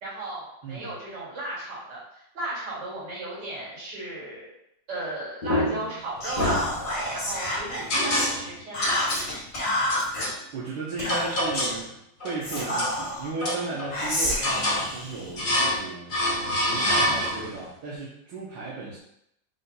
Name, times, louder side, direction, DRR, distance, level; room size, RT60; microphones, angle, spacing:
voice 1, 0.0-4.5 4.9-6.7 7.1-9.3 13.6-13.7, right 2 dB, 75° right, -7 dB, 2.7 m, -35 dB
sound 1, 5.4-6.0 6.4-7.2 7.9-8.5 8.8-9.3 9.9-10.4 11.1-11.8 12.2-13.0 13.4-14.0 14.4-14.9 15.4-15.8 16.1-17.6, left 1 dB, 35° left, 0.8 m, -26 dB
Whispering, 6.2-8.3 8.7-10.3 11.0-11.8 12.4-13.3 13.9-15.8, left 1 dB, 60° left, 2.6 m, -29 dB
voice 2, 10.5-11.9 12.2-16.1 16.6-19.0, right 3 dB, 90° right, -6 dB, 1.6 m, -35 dB
5.6 x 2.3 x 3.8 m, 0.77 s
omnidirectional pair, 1.9 m